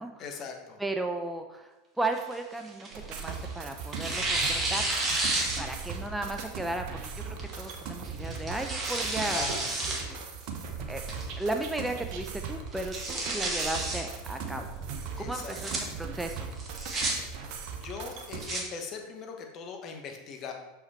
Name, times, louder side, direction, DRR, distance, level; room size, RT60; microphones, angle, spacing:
voice 1, 0.2-0.8 9.2-9.7 15.2-15.6 17.6-20.5, left 5 dB, 45° left, 4 dB, 1.3 m, -40 dB
voice 2, 0.8-1.7 2.0-4.9 5.6-9.5 10.1-10.2 10.9-11.0 11.4-14.7 15.2-15.7 16.0-16.5, right 2 dB, 10° right, 5 dB, 0.7 m, -35 dB
Tearing, 2.1-3.5 3.9-6.0 6.4-6.5 7.4-7.7 8.2-10.0 10.4-10.5 11.1-11.5 11.9-12.0 12.2-12.3 12.7-14.0 15.3-15.8 16.6-17.1 18.1-18.6, right 2 dB, 25° right, 2.0 m, -31 dB
sound 1, 2.9-18.5, right 5 dB, 55° right, 1.1 m, -39 dB
6.7 x 5.7 x 4.4 m, 1.1 s
hypercardioid pair, 85°, 0 cm